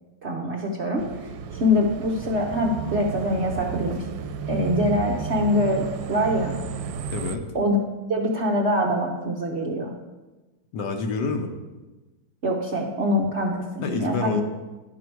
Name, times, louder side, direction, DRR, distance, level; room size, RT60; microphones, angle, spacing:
voice 1, 0.2-1.1 1.5-4.0 4.5-6.6 7.5-7.8 8.1-9.9 12.4-14.4, left 1 dB, 55° right, -2 dB, 0.7 m, -24 dB
sound 1, 1.0-7.4, right 7 dB, 80° right, 1.3 m, -32 dB
voice 2, 7.1-7.4 10.7-11.5 13.8-14.4, left 4 dB, 70° left, 5 dB, 1.4 m, -27 dB
10.5 x 6.1 x 4.6 m, 1.2 s
omnidirectional pair, 2.1 m